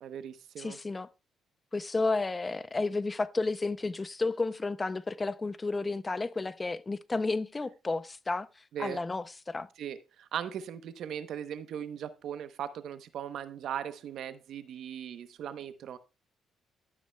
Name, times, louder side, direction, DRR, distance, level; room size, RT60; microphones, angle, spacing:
voice 1, 0.0-0.8 8.7-9.0 9.8-16.0, right 9 dB, 75° right, 0.8 m, -39 dB
voice 2, 0.6-1.1 1.7-8.5 8.8-9.7, left 3 dB, 25° left, 0.5 m, -32 dB
12.0 x 9.5 x 2.2 m
cardioid pair, 90°, 0 cm